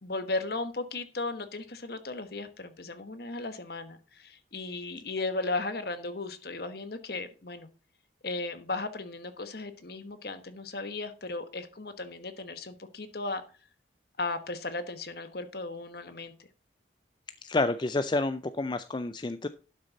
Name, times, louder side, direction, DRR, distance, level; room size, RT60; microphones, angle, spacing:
voice 1, 0.0-7.7 8.2-13.4 14.2-16.3, left 3 dB, 55° left, 10 dB, 1.2 m, -36 dB
voice 2, 17.4-19.5, left 2 dB, 25° left, 12 dB, 0.4 m, -29 dB
11.5 x 6.4 x 4.1 m, 0.35 s
head